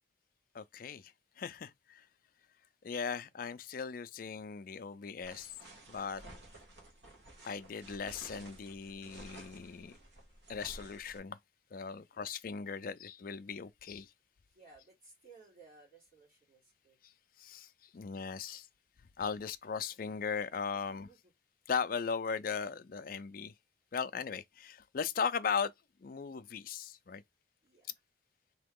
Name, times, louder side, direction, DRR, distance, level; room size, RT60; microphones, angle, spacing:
voice 1, 0.5-2.1 2.8-5.5 5.9-6.2 7.4-10.0 10.5-11.4 11.7-14.1 17.0-17.1 17.4-18.7 19.2-21.1 21.7-23.5 23.9-25.7 26.0-27.2, left 6 dB, 50° left, 0.4 m, -38 dB
sound 1, 5.2-11.2, right 1 dB, 65° right, 1.5 m, -53 dB
voice 2, 14.5-17.0 20.7-21.2 27.6-27.9, right 4 dB, 50° right, 2.7 m, -60 dB
3.8 x 2.8 x 3.6 m
head